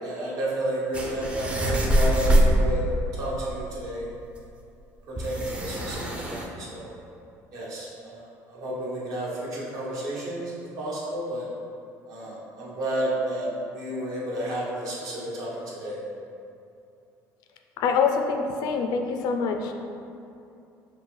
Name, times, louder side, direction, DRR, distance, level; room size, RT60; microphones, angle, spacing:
voice 1, 0.0-2.9 3.1-4.1 5.1-6.9 7.5-11.5 12.1-16.0, right 1 dB, 65° right, -6 dB, 1.1 m, -31 dB
sound 1, 0.9-2.6 4.0-4.1 4.4-4.5 5.2-6.5, equal, 15° right, 0.4 m, -23 dB
voice 2, 17.8-19.7, left 5 dB, 75° left, 4 dB, 0.4 m, -25 dB
5.3 x 2.1 x 3.1 m, 2.6 s
cardioid pair, 125°, 7 cm